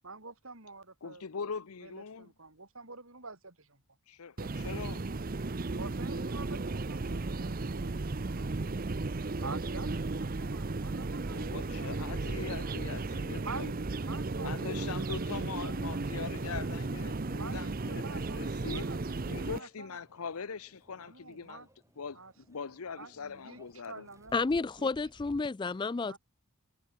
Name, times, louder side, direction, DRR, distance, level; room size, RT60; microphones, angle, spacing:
voice 1, 0.0-1.3 1.8-3.8 5.7-8.5 9.4-12.8 13.4-13.7 14.0-16.6 17.3-19.0 19.5-20.0 21.0-21.7 22.1-22.3 22.9-23.6 23.9-24.4 24.8-24.9 26.0-26.2, right 3 dB, 65° right, 4.8 m, -47 dB
voice 2, 1.0-2.3 4.1-5.1 11.3-13.7 14.4-18.9 19.2-21.7 22.0-24.1, left 5 dB, 80° left, 0.8 m, -42 dB
sound 1, 4.4-19.6, right 3 dB, 40° right, 0.7 m, -35 dB
Microwave oven, 17.9-25.4, right 1 dB, 15° right, 3.8 m, -60 dB
voice 3, 24.3-26.2, left 4 dB, 20° left, 0.3 m, -31 dB
head